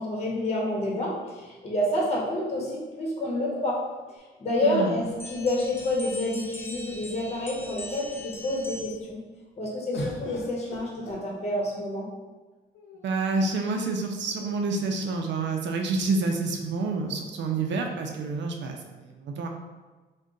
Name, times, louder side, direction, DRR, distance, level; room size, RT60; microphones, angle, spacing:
voice 1, 0.0-3.8 4.4-9.2 9.6-12.1, left 1 dB, 35° left, -3 dB, 1.0 m, -28 dB
sound 1, 1.6-2.7 4.7-6.2 7.0-7.1 7.4-8.0 9.9-11.8 12.7-13.4, equal, 75° left, 0.7 m, -42 dB
voice 2, 4.6-4.9 13.0-19.5, right 3 dB, 65° right, 3 dB, 0.5 m, -28 dB
sound 2, 5.2-9.1, left 2 dB, 10° left, 0.4 m, -41 dB
3.6 x 2.2 x 3.7 m, 1.3 s
cardioid pair, 90°, 20 cm